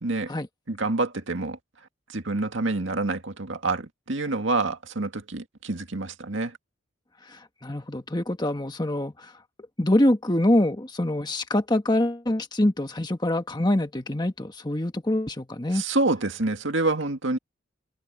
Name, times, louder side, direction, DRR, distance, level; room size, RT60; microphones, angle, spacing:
voice 1, 0.0-0.3 0.7-1.6 2.1-6.6 15.7-17.4, right 2 dB, 65° right, 2.0 m, -27 dB
voice 2, 7.2-9.3 9.8-15.8, left 1 dB, 20° left, 1.4 m, -25 dB
head